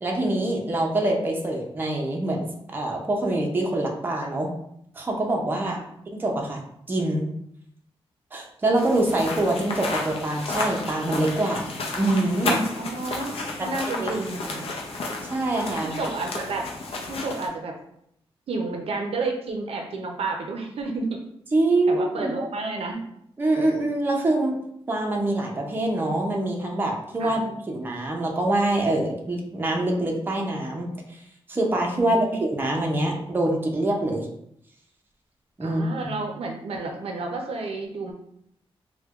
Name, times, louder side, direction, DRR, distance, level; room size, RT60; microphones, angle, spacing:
voice 1, 0.0-2.5 2.7-4.5 4.9-5.8 6.1-6.6 6.9-7.3 8.3-11.7 12.0-12.6 13.6-13.7 14.0-14.1 15.2-15.9 21.5-22.3 23.4-24.6 24.9-31.2 31.5-34.3 35.6-36.1, right 1 dB, 20° right, 0 dB, 0.5 m, -25 dB
sound 1, 8.8-17.5, left 2 dB, 70° left, 0.5 m, -32 dB
voice 2, 12.8-14.7 15.8-16.6 17.1-17.8 18.5-21.2 21.9-23.0 27.2-27.4 31.9-32.4 35.6-38.1, right 3 dB, 70° right, 2 dB, 0.5 m, -31 dB
4.3 x 2.1 x 2.3 m, 0.73 s
wide cardioid pair, 165°, 10 cm